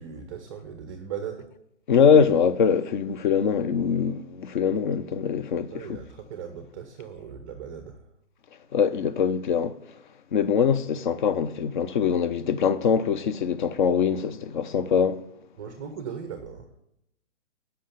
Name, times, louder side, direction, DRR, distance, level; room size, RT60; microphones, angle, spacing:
voice 1, 0.0-1.5 5.7-8.0 15.6-16.7, right 7 dB, 20° right, 0.5 m, -38 dB
voice 2, 1.9-6.0 8.7-9.8 10.3-15.2, left 7 dB, 40° left, 0.6 m, -23 dB
7.5 x 5.7 x 6.6 m
hypercardioid pair, 145°, 36 cm